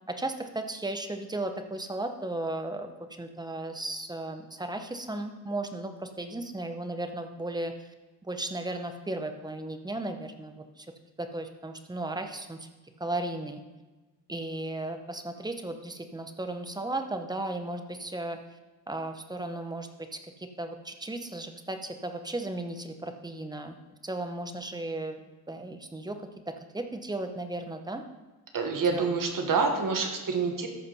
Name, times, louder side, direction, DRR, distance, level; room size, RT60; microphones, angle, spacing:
voice 1, 0.1-2.9 3.2-7.9 8.2-10.9 11.2-12.7 13.0-13.6 14.3-18.4 18.9-23.8 24.0-25.2 25.5-26.2 26.5-28.0 28.9-29.1, right 2 dB, 10° right, 6 dB, 0.9 m, -35 dB
voice 2, 28.5-30.7, right 4 dB, 60° right, 3 dB, 1.5 m, -27 dB
13.5 x 5.1 x 5.5 m, 1.2 s
wide cardioid pair, 120°, 38 cm